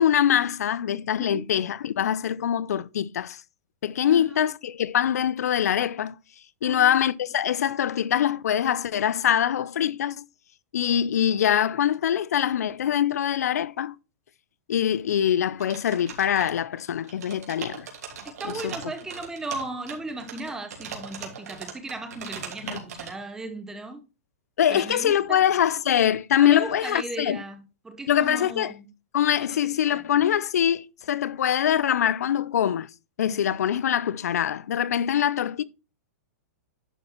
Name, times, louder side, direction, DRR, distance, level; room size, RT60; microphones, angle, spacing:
voice 1, 0.0-3.4 3.8-6.2 6.6-10.2 10.7-13.9 14.7-17.9 18.6-18.7 22.6-22.8 24.6-27.4 28.1-28.7 29.1-32.9 33.2-35.6, left 10 dB, 90° left, 0.5 m, -23 dB
voice 2, 4.1-4.4 6.6-7.0 18.2-24.0 24.7-25.5 26.4-28.9 29.9-30.0 33.2-33.5, right 2 dB, 5° right, 0.8 m, -36 dB
sound 1, 15.6-16.8 17.0-23.1, right 6 dB, 90° right, 2.8 m, -39 dB
11.0 x 4.4 x 4.4 m
hypercardioid pair, 160°, 8 cm